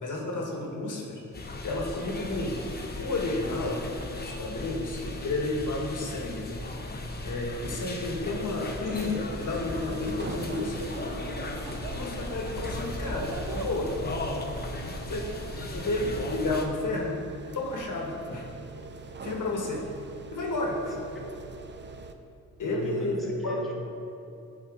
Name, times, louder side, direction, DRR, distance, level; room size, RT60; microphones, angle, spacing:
voice 1, 0.0-2.6 3.0-3.8 4.2-6.5 7.2-10.9 11.9-14.2 15.1-15.3 15.7-17.2 17.5-18.5 19.2-19.8 20.3-21.0 22.6-23.2 23.4-23.6, left 2 dB, 70° left, -1 dB, 1.4 m, -31 dB
sound 1, 1.3-16.7, left 2 dB, 30° left, 0.8 m, -37 dB
sound 2, 8.8-22.1, right 4 dB, 35° right, 0.5 m, -44 dB
sound 3, 10.6-15.7, right 5 dB, 85° right, 0.6 m, -42 dB
voice 2, 22.6-23.7, equal, ahead, -4 dB, 1.3 m, -35 dB
11.5 x 4.4 x 4.8 m, 2.7 s
wide cardioid pair, 120°, 32 cm